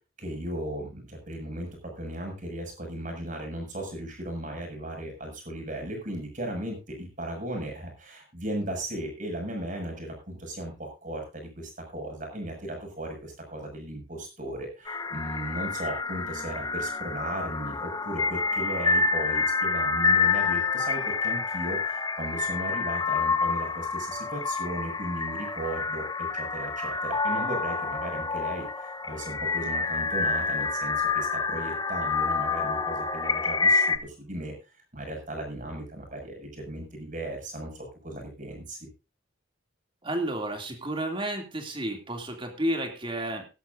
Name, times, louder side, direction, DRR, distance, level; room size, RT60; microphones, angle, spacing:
voice 1, 0.2-1.7 2.0-34.5 34.9-38.9, right 1 dB, 40° right, 2 dB, 6.6 m, -36 dB
sound 1, 14.9-34.0, left 4 dB, 20° left, 0.9 m, -28 dB
voice 2, 40.0-43.5, right 1 dB, 25° right, 4 dB, 2.8 m, -31 dB
18.0 x 13.0 x 2.7 m, 0.30 s
head